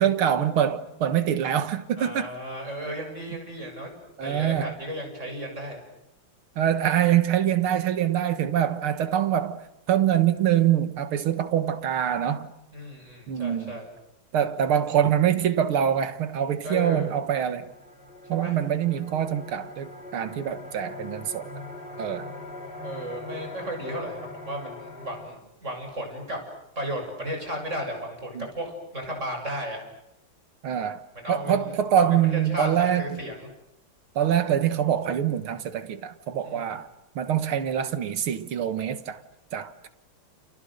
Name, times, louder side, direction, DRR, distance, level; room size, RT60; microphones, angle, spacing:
voice 1, 0.0-2.3 4.2-4.7 6.6-9.6 9.9-12.5 13.3-13.8 14.3-17.7 18.3-21.5 22.0-22.3 28.3-28.5 30.6-31.0 31.3-33.2 34.2-36.9 37.2-39.2 39.5-39.9, right 10 dB, 85° right, 2.3 m, -24 dB
voice 2, 2.0-5.8 12.7-13.9 14.4-14.5 16.6-17.1 18.3-18.5 22.8-26.4 26.8-29.8 31.1-33.5 36.5-36.7, equal, 35° right, 7.6 m, -34 dB
sound 1, 17.1-25.3, left 2 dB, 25° left, 3.7 m, -42 dB
29.5 x 29.0 x 6.6 m
omnidirectional pair, 2.3 m